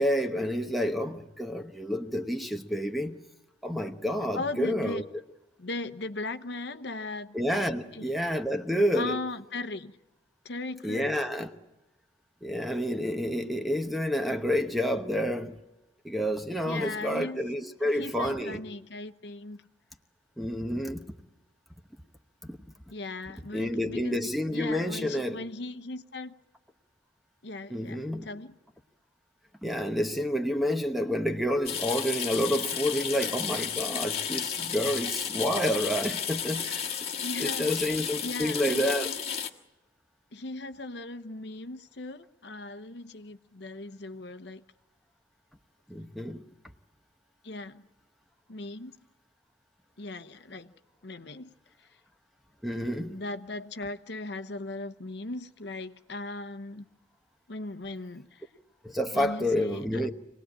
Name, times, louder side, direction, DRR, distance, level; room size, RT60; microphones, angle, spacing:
voice 1, 0.0-3.2 3.6-5.0 7.3-9.2 10.8-11.5 12.4-15.6 16.0-18.6 20.4-21.1 22.4-22.6 23.5-25.4 27.7-28.3 29.6-36.8 37.4-39.1 45.9-46.4 52.6-53.2 58.8-60.1, equal, ahead, 1.0 m, -29 dB
voice 2, 4.3-5.0 5.6-7.4 7.9-8.1 8.9-9.9 10.4-11.2 16.6-19.6 22.9-24.2 24.5-26.3 27.4-28.5 37.2-38.0 38.2-39.2 40.3-44.6 47.4-47.8 48.5-48.9 50.0-50.7 51.0-51.5 51.8-51.9 53.1-56.8 57.5-58.5 59.1-60.1, left 2 dB, 60° left, 1.0 m, -38 dB
sound 1, 31.6-39.5, left 7 dB, 35° left, 1.6 m, -33 dB
26.5 x 19.0 x 8.8 m
head